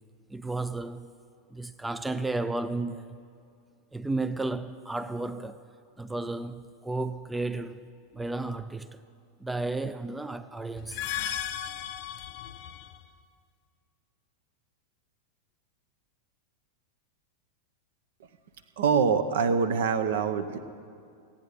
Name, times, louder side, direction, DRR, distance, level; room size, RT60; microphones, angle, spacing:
voice 1, 0.3-1.2 1.5-3.2 3.9-5.6 6.0-9.0 9.4-11.0, right 2 dB, 5° right, 0.3 m, -33 dB
sound 1, 10.8-13.0, left 10 dB, 45° left, 0.5 m, -35 dB
voice 2, 18.8-20.6, right 6 dB, 55° right, 0.8 m, -24 dB
16.5 x 8.8 x 6.5 m
figure-of-eight pair, 90°, 0 cm